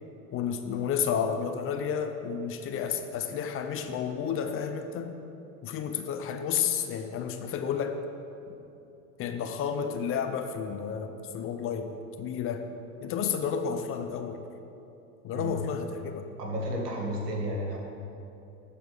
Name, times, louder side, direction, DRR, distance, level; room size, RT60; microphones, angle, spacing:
voice 1, 0.3-5.2 5.6-8.0 9.2-12.7 13.0-14.4 15.2-16.3, left 7 dB, 30° left, 7 dB, 0.6 m, -31 dB
voice 2, 16.4-17.8, equal, 90° right, -1 dB, 1.9 m, -32 dB
12.0 x 4.4 x 5.3 m, 2.8 s
hypercardioid pair, 100°, 46 cm